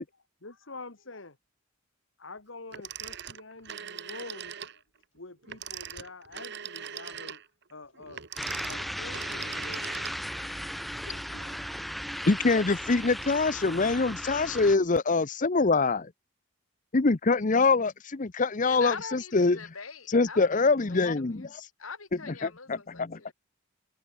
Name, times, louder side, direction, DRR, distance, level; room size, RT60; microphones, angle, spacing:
voice 1, 0.0-1.4 2.2-4.8 5.1-7.4 7.7-8.2 8.6-10.4 11.0-11.7, left 3 dB, 65° left, 2.1 m, -47 dB
Telephone, 2.7-4.8 5.4-10.5, right 8 dB, 55° right, 1.9 m, -41 dB
sound 1, 8.4-14.8, equal, ahead, 2.0 m, -36 dB
voice 2, 12.3-16.1 16.9-19.6 20.1-21.7 22.4-23.2, left 3 dB, 40° left, 0.7 m, -24 dB
voice 3, 18.6-20.6 20.9-21.5 21.8-23.3, left 5 dB, 90° left, 3.7 m, -43 dB
head